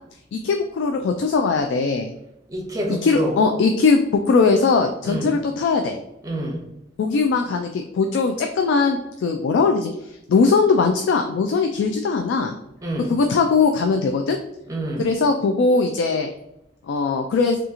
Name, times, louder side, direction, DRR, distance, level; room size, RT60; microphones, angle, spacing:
voice 1, 0.3-2.1 2.9-6.0 7.0-9.9 10.3-12.6 13.1-14.4 15.0-16.3 16.9-17.6, left 4 dB, 90° left, 4 dB, 0.3 m, -20 dB
voice 2, 2.5-3.4 5.0-5.4 6.2-6.6 12.8-13.1 14.7-15.1, right 1 dB, 20° right, -1 dB, 0.7 m, -27 dB
2.8 x 2.4 x 3.6 m, 0.84 s
head